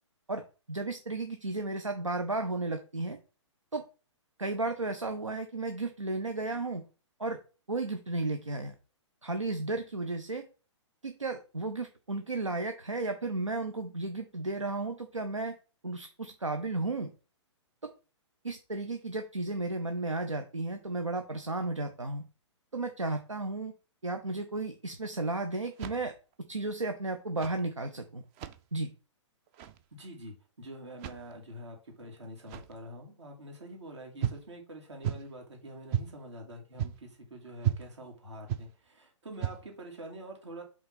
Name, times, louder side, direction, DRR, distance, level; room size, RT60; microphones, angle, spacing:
voice 1, 0.7-3.2 3.7-3.8 4.4-6.8 7.2-7.4 7.7-8.7 9.2-10.4 11.0-15.6 15.8-17.1 17.8-17.9 18.4-22.2 22.7-23.7 24.0-26.1 26.5-28.2 28.7-28.9, right 2 dB, 85° right, 6 dB, 0.9 m, -33 dB
sound 1, 25.7-26.3 27.2-27.6 28.2-28.6 29.5-29.8 30.9-31.3 32.4-32.8 34.2-34.5 35.0-35.4 35.9-36.2 36.8-37.2 37.6-37.9 38.5-38.7 39.3-39.7, right 10 dB, 25° right, 0.5 m, -34 dB
voice 2, 30.0-40.6, right 1 dB, 65° right, 1 dB, 2.7 m, -46 dB
5.5 x 3.8 x 5.7 m, 0.35 s
figure-of-eight pair, 120°, 16 cm